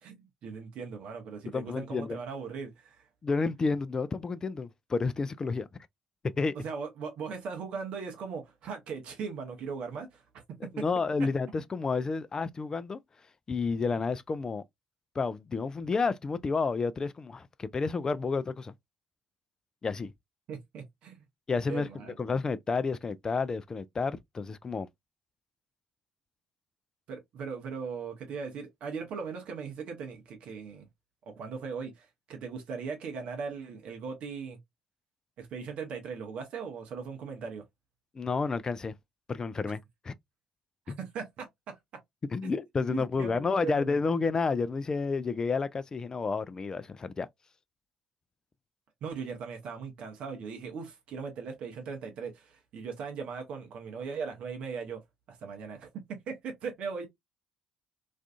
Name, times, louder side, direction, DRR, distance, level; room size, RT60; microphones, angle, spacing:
voice 1, 0.0-3.0 6.6-10.2 10.6-10.9 20.5-21.2 21.7-22.1 27.1-30.9 31.3-34.6 35.4-37.6 41.0-41.8 42.4-42.5 43.2-44.0 49.0-55.0 55.3-57.1, right 5 dB, 55° right, 0.7 m, -39 dB
voice 2, 1.5-2.2 3.2-5.7 6.2-6.6 10.7-13.0 13.5-14.6 15.2-18.7 19.8-20.1 21.5-21.9 22.2-24.9 38.2-38.9 39.3-39.8 40.0-40.1 40.9-41.0 42.3-47.3, left 4 dB, 30° left, 0.3 m, -30 dB
2.5 x 2.4 x 2.3 m
figure-of-eight pair, 50°, 2 cm